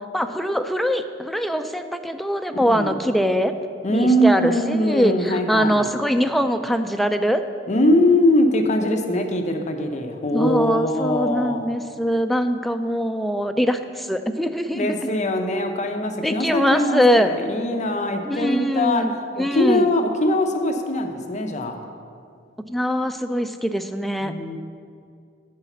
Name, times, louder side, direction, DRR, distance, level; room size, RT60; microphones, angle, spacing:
voice 1, 0.1-3.5 3.9-7.4 10.3-15.1 16.2-17.3 18.2-19.9 22.7-24.3, equal, ahead, 7 dB, 0.3 m, -22 dB
voice 2, 2.6-2.9 3.8-5.9 7.7-11.6 14.7-19.0 19.3-21.8 24.2-24.6, left 1 dB, 40° left, 5 dB, 0.6 m, -22 dB
10.0 x 4.0 x 6.9 m, 2.3 s
head